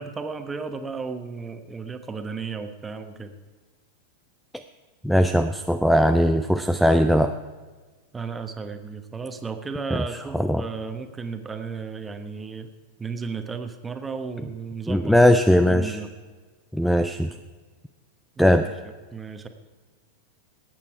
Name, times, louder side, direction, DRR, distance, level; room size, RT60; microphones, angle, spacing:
voice 1, 0.0-3.4 8.1-12.7 13.0-15.1 15.5-16.1 18.4-18.6 19.1-19.5, right 5 dB, 15° right, 7 dB, 1.2 m, -34 dB
voice 2, 5.0-7.4 9.9-10.0 10.3-10.6 14.9-16.0 16.7-17.3 18.4-18.7, equal, ahead, 10 dB, 0.5 m, -19 dB
20.5 x 9.0 x 4.8 m, 1.4 s
figure-of-eight pair, 90°, 0 cm